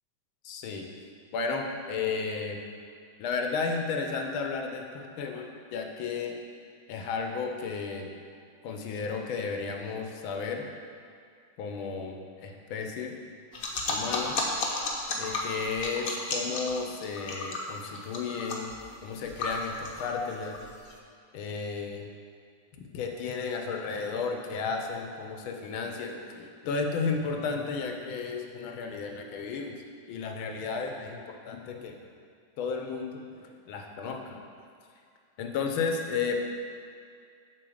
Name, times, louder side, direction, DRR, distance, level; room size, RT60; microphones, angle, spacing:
voice 1, 0.4-0.9 1.3-2.6 3.2-6.4 6.9-8.1 8.6-10.6 11.6-13.1 13.9-14.4 15.2-18.7 19.0-20.6 21.3-22.1 22.9-29.8 30.1-31.9 32.6-34.4 35.4-36.4, left 5 dB, 80° left, 3 dB, 1.6 m, -33 dB
sound 1, 13.5-20.9, left 3 dB, 55° left, 1.1 m, -33 dB
7.6 x 4.7 x 6.4 m, 2.2 s
omnidirectional pair, 2.2 m